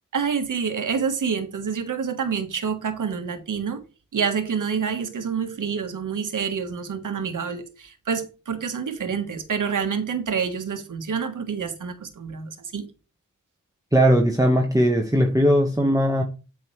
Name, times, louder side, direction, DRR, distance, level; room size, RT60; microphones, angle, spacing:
voice 1, 0.1-3.8 4.1-12.9, right 6 dB, 80° right, 1.5 m, -27 dB
voice 2, 13.9-16.2, equal, 10° right, 1.4 m, -19 dB
8.8 x 6.4 x 3.3 m
cardioid pair, 55°, 31 cm